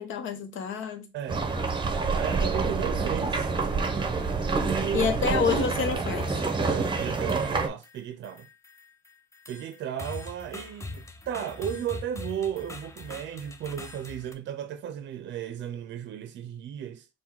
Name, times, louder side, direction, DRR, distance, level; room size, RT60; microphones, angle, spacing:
voice 1, 0.0-1.1 4.9-6.3, left 6 dB, 80° left, 0.8 m, -28 dB
voice 2, 1.1-1.5 2.1-3.5 4.6-5.5 6.6-8.5 9.5-17.1, right 9 dB, 65° right, 0.5 m, -34 dB
sound 1, 1.3-7.7, right 4 dB, 25° right, 0.7 m, -27 dB
sound 2, 5.9-6.7 7.2-14.3, left 2 dB, 15° left, 0.6 m, -43 dB
3.6 x 2.2 x 4.4 m
cardioid pair, 90°, 20 cm